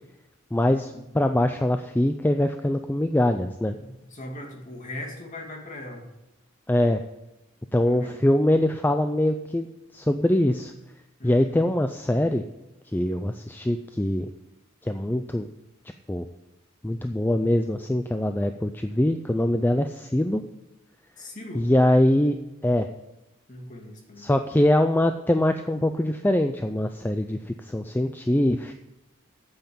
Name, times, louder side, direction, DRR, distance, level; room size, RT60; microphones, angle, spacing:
voice 1, 0.5-3.7 6.7-7.0 7.7-9.7 9.9-10.7 11.2-12.4 12.9-14.3 14.8-15.5 16.1-16.3 16.8-20.4 21.6-22.4 22.6-22.9 24.2-28.8, left 1 dB, 10° left, 7 dB, 0.4 m, -23 dB
voice 2, 3.8-6.0 7.8-8.3 11.2-11.6 21.2-21.7 23.5-24.3, left 1 dB, 35° left, 1 dB, 2.3 m, -39 dB
9.0 x 7.9 x 8.6 m, 0.97 s
head